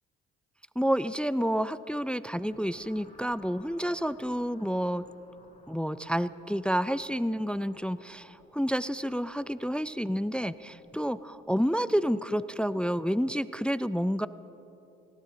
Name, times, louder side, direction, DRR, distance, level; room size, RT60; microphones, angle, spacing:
voice 1, 0.8-5.0 5.7-14.3, equal, 5° left, 16 dB, 0.4 m, -29 dB
sound 1, 2.2-11.9, left 1 dB, 25° left, 3.7 m, -60 dB
19.5 x 17.0 x 3.8 m, 3.0 s
supercardioid pair, 55°, 29 cm